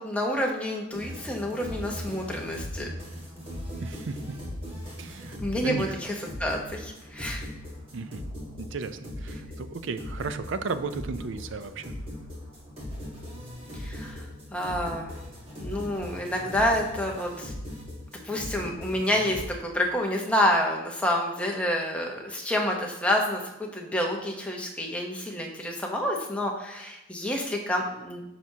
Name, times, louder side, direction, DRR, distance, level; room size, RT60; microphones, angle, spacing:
voice 1, 0.0-2.9 5.4-6.1 6.4-7.4 13.7-14.2 14.5-15.1 15.6-17.5 18.2-28.2, left 1 dB, 5° left, 0 dB, 0.8 m, -28 dB
sound 1, 0.9-19.4, left 1 dB, 25° right, 1.6 m, -39 dB
voice 2, 3.8-4.4 5.0-5.4 5.6-6.0 7.9-8.2 8.6-11.9, right 4 dB, 60° right, 11 dB, 0.4 m, -34 dB
9.2 x 5.9 x 2.8 m, 0.92 s
head